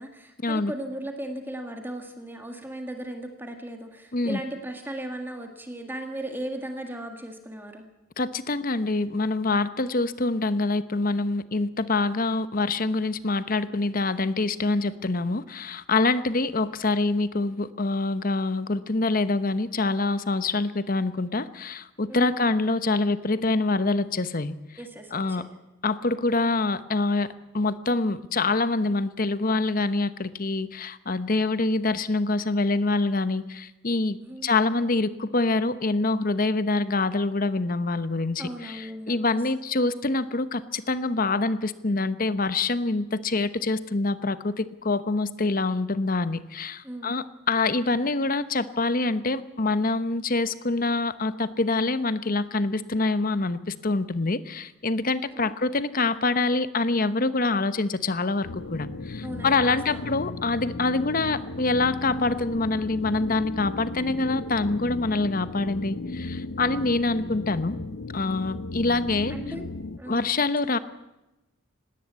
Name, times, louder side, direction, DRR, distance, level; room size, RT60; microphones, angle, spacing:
voice 1, 0.0-7.9 22.1-22.3 24.8-25.5 34.2-34.5 38.4-39.4 46.8-47.2 55.4-55.5 59.2-60.1 66.6-66.9 69.3-69.7 70.0-70.2, right 1 dB, 10° right, 4 dB, 1.9 m, -37 dB
voice 2, 8.2-24.5 25.1-25.4 25.8-27.3 27.5-34.2 34.4-67.7 68.1-69.3 70.1-70.8, left 3 dB, 45° left, 13 dB, 1.0 m, -25 dB
sound 1, 58.4-70.0, left 2 dB, 80° left, 0.9 m, -35 dB
19.5 x 17.5 x 8.3 m, 0.97 s
head